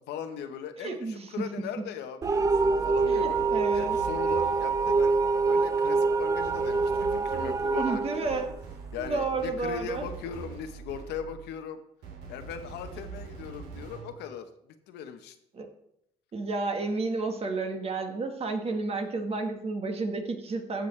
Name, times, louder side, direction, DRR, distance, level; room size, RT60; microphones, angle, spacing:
voice 1, 0.1-3.4 3.7-5.2 5.4-8.0 8.3-8.5 8.9-11.8 12.3-14.5 14.9-15.4, left 7 dB, 80° left, 8 dB, 0.9 m, -39 dB
voice 2, 0.8-1.4 3.1-4.0 7.8-8.5 9.0-10.1 15.5-15.7 16.3-20.9, right 3 dB, 35° right, 5 dB, 1.4 m, -31 dB
sound 1, 2.2-9.1, right 4 dB, 20° right, 0.4 m, -26 dB
sound 2, 2.2-5.5 6.4-11.5 12.0-14.2, right 6 dB, 90° right, 2.6 m, -43 dB
14.5 x 6.3 x 3.2 m, 0.79 s
cardioid pair, 110°, 17 cm